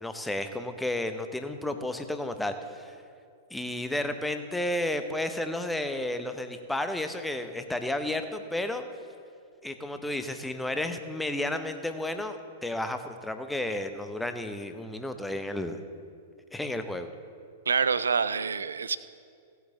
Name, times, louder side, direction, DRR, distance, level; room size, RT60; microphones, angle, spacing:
voice 1, 0.0-2.9 3.5-8.8 9.6-15.8 16.5-17.1, left 1 dB, 5° left, 8 dB, 0.7 m, -32 dB
voice 2, 17.7-19.0, right 5 dB, 70° right, 16 dB, 0.4 m, -26 dB
16.5 x 8.1 x 3.8 m, 2.3 s
figure-of-eight pair, 100°, 0 cm